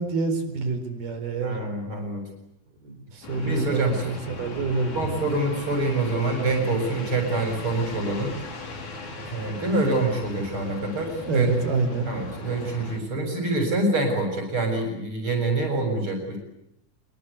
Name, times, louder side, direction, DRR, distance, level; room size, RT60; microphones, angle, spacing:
voice 1, 0.0-1.6 2.8-5.2 11.2-12.1, right 3 dB, 80° right, 8 dB, 6.1 m, -27 dB
voice 2, 1.4-2.2 3.4-3.9 4.9-8.4 9.2-11.5 12.0-16.4, right 2 dB, 35° right, 1 dB, 7.7 m, -26 dB
sound 1, 3.2-13.0, left 2 dB, 55° left, 5.4 m, -38 dB
26.5 x 24.0 x 8.4 m, 0.80 s
omnidirectional pair, 4.3 m